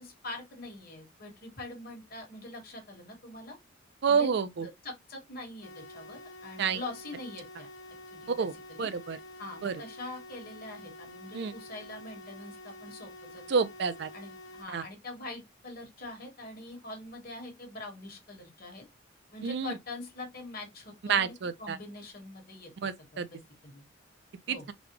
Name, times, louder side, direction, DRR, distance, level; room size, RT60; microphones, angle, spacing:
voice 1, 0.0-3.6 4.1-4.3 4.6-7.7 8.1-8.9 9.4-13.4 14.1-18.8 19.3-22.7 23.1-23.8 24.5-24.7, left 2 dB, 50° left, 1.4 m, -44 dB
voice 2, 4.0-4.7 6.6-6.8 8.3-8.5 8.8-9.2 9.6-9.8 11.3-11.5 13.5-14.1 14.7-14.8 19.4-19.7 21.1-21.8 22.8-23.3 24.5-24.7, right 6 dB, 60° right, 0.4 m, -29 dB
sound 1, 5.6-14.6, left 1 dB, 85° left, 1.2 m, -48 dB
4.1 x 2.2 x 2.9 m
head